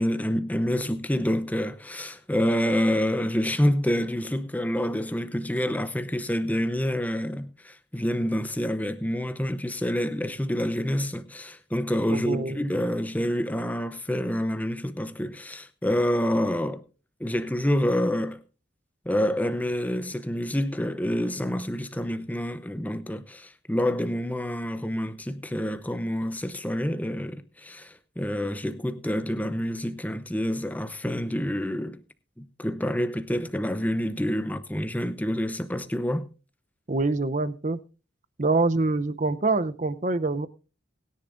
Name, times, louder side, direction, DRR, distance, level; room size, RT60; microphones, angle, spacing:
voice 1, 0.0-16.8 17.2-18.4 19.0-32.0 32.4-36.3, equal, 10° left, 0.8 m, -27 dB
voice 2, 12.1-12.6 36.9-37.8 38.4-40.5, right 3 dB, 40° right, 0.7 m, -25 dB
20.5 x 10.5 x 2.6 m
head